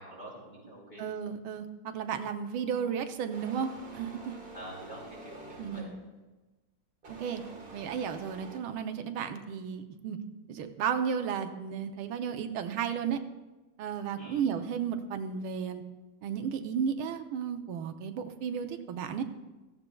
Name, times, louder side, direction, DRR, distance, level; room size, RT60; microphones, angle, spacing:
voice 1, 0.0-1.0 4.5-5.9 14.2-14.4, right 1 dB, 25° left, -4 dB, 4.5 m, -46 dB
voice 2, 1.0-4.3 5.6-5.9 7.1-7.4 7.7-10.2 10.5-13.2 13.8-15.8 16.2-19.2, right 7 dB, 90° right, 7 dB, 1.6 m, -33 dB
sound 1, 3.3-6.1 7.0-8.6, right 2 dB, 30° right, 1.3 m, -47 dB
15.5 x 14.5 x 2.3 m, 1.2 s
omnidirectional pair, 2.2 m